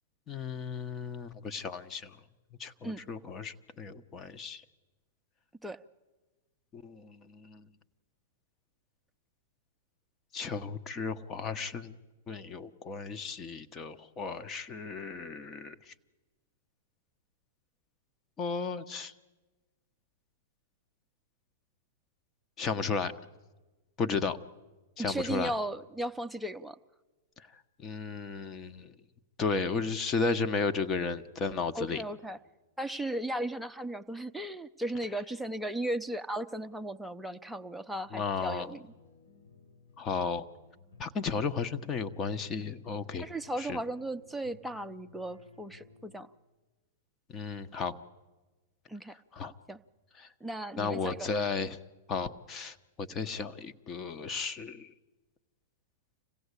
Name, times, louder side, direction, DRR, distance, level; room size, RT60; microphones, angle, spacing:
voice 1, 0.3-2.2 2.6-4.6 6.7-7.7 10.3-11.9 12.3-15.9 18.4-19.1 22.6-23.1 24.0-24.4 25.0-25.5 27.4-27.5 27.8-28.9 29.4-32.0 38.1-38.7 40.0-40.4 41.0-43.3 43.6-43.8 47.3-48.0 49.3-49.5 50.2-50.3 50.8-51.8 52.1-54.9, left 4 dB, 25° left, 10 dB, 1.1 m, -34 dB
voice 2, 25.0-26.8 31.7-32.4 32.8-38.8 43.2-46.3 48.9-49.2 49.7-49.8 50.4-51.3, right 1 dB, ahead, 7 dB, 0.8 m, -36 dB
sound 1, 37.9-46.3, left 3 dB, 70° left, 6.7 m, -57 dB
26.5 x 16.5 x 8.3 m, 1.2 s
hypercardioid pair, 110°, 0 cm